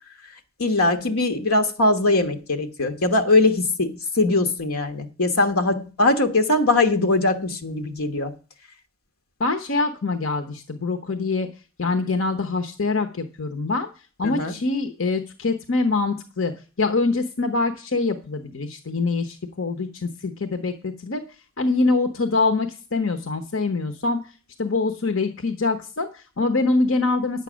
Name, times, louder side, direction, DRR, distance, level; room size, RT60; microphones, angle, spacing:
voice 1, 0.6-8.3 14.2-14.5, left 2 dB, 85° left, 1.3 m, -21 dB
voice 2, 9.4-11.5 11.8-13.9 14.2-16.5 16.8-21.2 21.6-24.2 24.6-27.4, left 3 dB, 65° left, 1.0 m, -24 dB
10.0 x 8.2 x 6.3 m
head